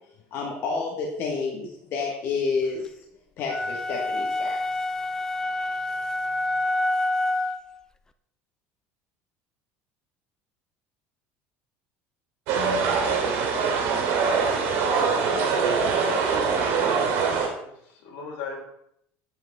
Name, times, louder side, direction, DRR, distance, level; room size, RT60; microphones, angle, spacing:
voice 1, 0.3-2.9 3.4-4.6, left 4 dB, 50° left, -1 dB, 1.5 m, -29 dB
sound 1, 3.5-7.7, left 2 dB, 10° left, 0.4 m, -27 dB
voice 2, 12.5-14.4 15.3-16.2, left 3 dB, 90° left, -1 dB, 2.2 m, -39 dB
sound 2, 12.5-17.5, right 5 dB, 70° right, 2.5 m, -23 dB
voice 3, 15.5-16.3 16.9-18.6, left 5 dB, 70° left, -1 dB, 3.5 m, -39 dB
8.9 x 7.7 x 3.6 m, 0.76 s
cardioid pair, 150°, 5 cm